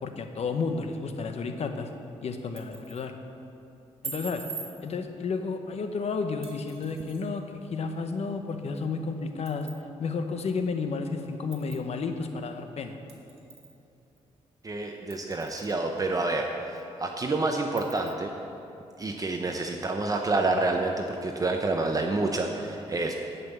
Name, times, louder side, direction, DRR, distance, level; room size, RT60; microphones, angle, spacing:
voice 1, 0.0-1.9 2.2-3.1 4.0-4.4 4.8-9.7 10.0-13.0, left 4 dB, 60° left, 6 dB, 1.0 m, -32 dB
sound 1, 2.3-3.1 4.0-4.7 6.4-7.2 8.8-8.9 9.5-9.8 10.5-10.6 11.5-11.8 13.1-13.8 14.2-14.3 15.1-15.8 16.3-16.4 16.8-16.9 17.8-18.1, right 5 dB, 55° right, 1.8 m, -42 dB
voice 2, 14.6-18.3 19.0-23.1, right 2 dB, 30° right, 3 dB, 0.7 m, -28 dB
11.0 x 5.5 x 7.9 m, 2.7 s
cardioid pair, 90°, 12 cm